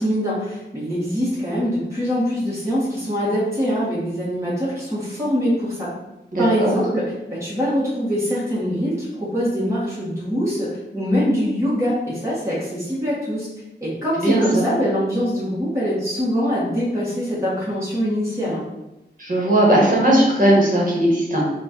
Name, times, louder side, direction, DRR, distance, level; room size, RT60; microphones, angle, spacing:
voice 1, 0.0-5.9 6.4-7.0 7.3-10.7 10.9-13.5 13.8-18.6, equal, 15° right, -8 dB, 1.6 m, -23 dB
voice 2, 6.3-6.7 14.2-14.6 19.2-21.4, right 1 dB, 50° right, -3 dB, 1.4 m, -17 dB
4.3 x 2.5 x 4.4 m, 0.94 s
wide cardioid pair, 105°, 19 cm